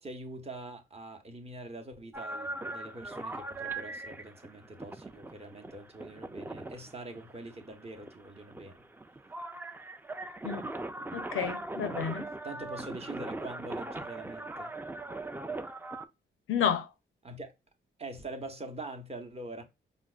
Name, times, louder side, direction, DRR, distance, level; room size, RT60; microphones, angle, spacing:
voice 1, 0.0-8.8 12.4-14.7 17.2-17.5 18.0-19.6, right 2 dB, 30° right, 0.7 m, -44 dB
sound 1, 2.1-16.1, right 2 dB, 10° right, 0.3 m, -40 dB
voice 2, 11.1-12.3 16.5-16.9, left 8 dB, 80° left, 0.5 m, -31 dB
4.7 x 2.1 x 2.3 m
cardioid pair, 65°, 21 cm